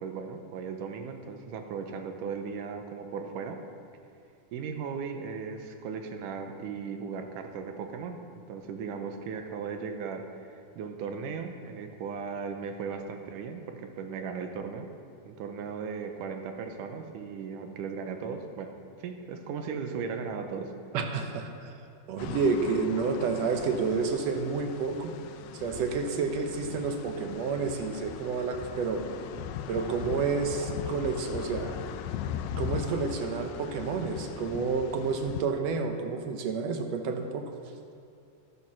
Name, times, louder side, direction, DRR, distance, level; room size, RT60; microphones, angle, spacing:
voice 1, 0.0-3.6 4.5-14.9 15.3-18.7 19.0-20.7 21.0-21.1, right 5 dB, 90° right, 5 dB, 2.5 m, -37 dB
voice 2, 20.9-21.7 22.1-25.1 25.5-29.1 29.7-31.8 32.6-37.5, right 5 dB, 65° right, 5 dB, 1.8 m, -30 dB
sound 1, 22.2-35.4, left 9 dB, 85° left, 2.1 m, -39 dB
14.0 x 8.9 x 6.1 m, 2.5 s
omnidirectional pair, 3.6 m